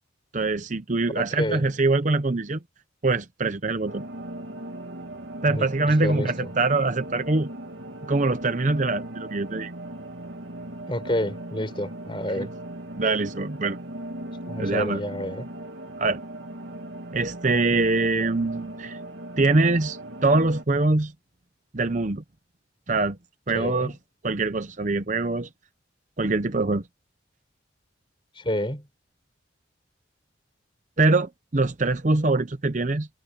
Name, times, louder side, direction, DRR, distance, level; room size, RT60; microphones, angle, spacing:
voice 1, 0.3-2.6 3.0-4.0 5.4-7.5 8.1-9.7 12.4-12.5 13.0-13.8 14.6-15.0 16.0-16.2 17.1-19.0 19.4-21.1 21.7-22.2 22.9-23.2 23.5-23.9 24.2-25.5 26.2-26.8 31.0-33.1, right 3 dB, 40° right, 0.8 m, -23 dB
voice 2, 1.1-1.7 5.5-6.5 10.9-12.5 14.5-15.5 23.5-24.0 28.3-28.9, left 1 dB, 25° left, 4.8 m, -29 dB
sound 1, 3.9-20.6, right 1 dB, 75° right, 2.4 m, -38 dB
head